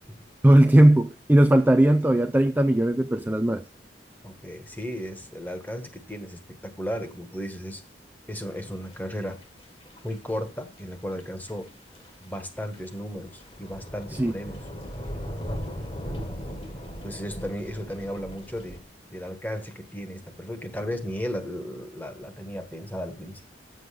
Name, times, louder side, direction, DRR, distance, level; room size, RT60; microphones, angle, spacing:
voice 1, 0.4-3.6 14.2-14.3, right 1 dB, 10° right, 0.4 m, -18 dB
voice 2, 4.2-7.8 8.3-9.4 10.0-11.7 12.2-14.6 17.0-18.8 19.1-23.4, equal, 10° left, 1.5 m, -35 dB
sound 1, 8.6-9.1 9.4-10.3 10.8-10.9 11.1-11.2 11.5-11.6 11.9-12.4 12.7-18.8, equal, 30° left, 1.7 m, -38 dB
9.3 x 7.8 x 6.7 m
head